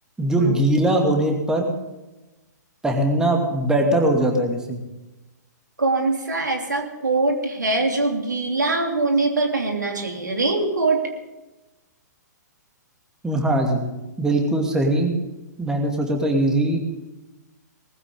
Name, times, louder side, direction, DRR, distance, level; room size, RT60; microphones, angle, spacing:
voice 1, 0.2-1.7 2.8-4.8 13.2-13.9 14.2-15.1 15.6-16.8, right 1 dB, 5° right, 1 dB, 2.5 m, -21 dB
voice 2, 5.8-11.0, right 3 dB, 75° right, 3 dB, 3.0 m, -23 dB
19.5 x 15.0 x 3.8 m, 1.1 s
figure-of-eight pair, 120°, 10 cm